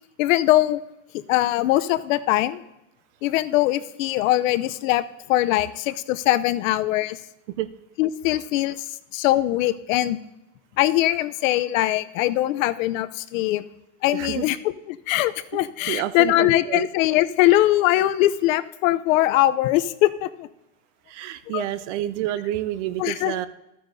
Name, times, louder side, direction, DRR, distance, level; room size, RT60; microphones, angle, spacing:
voice 1, 0.2-0.8 1.3-2.6 3.2-5.0 5.3-7.2 8.0-8.9 9.1-10.2 10.8-13.6 14.0-14.6 14.9-20.5 21.5-21.6 23.0-23.3, left 15 dB, 80° left, 13 dB, 0.7 m, -21 dB
voice 2, 14.1-14.5 15.9-16.9 21.1-23.5, right 13 dB, 65° right, 14 dB, 0.6 m, -29 dB
13.5 x 9.3 x 2.6 m, 0.91 s
supercardioid pair, 160°, 39 cm